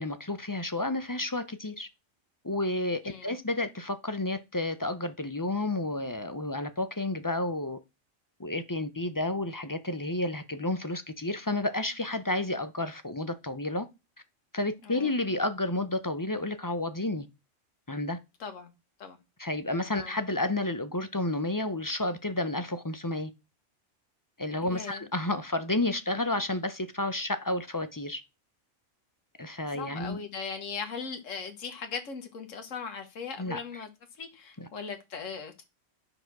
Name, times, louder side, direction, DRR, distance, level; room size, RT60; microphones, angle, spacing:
voice 1, 0.0-1.9 2.4-7.8 8.4-13.9 14.5-17.3 17.9-18.2 19.4-23.3 24.4-28.2 29.4-30.2 33.4-33.6 34.6-34.7, left 2 dB, 20° left, 0.6 m, -31 dB
voice 2, 18.4-18.7 19.0-19.2 20.0-20.1 24.6-25.0 29.8-33.9 34.2-35.6, left 5 dB, 75° left, 1.6 m, -39 dB
10.5 x 4.9 x 6.0 m
omnidirectional pair, 1.3 m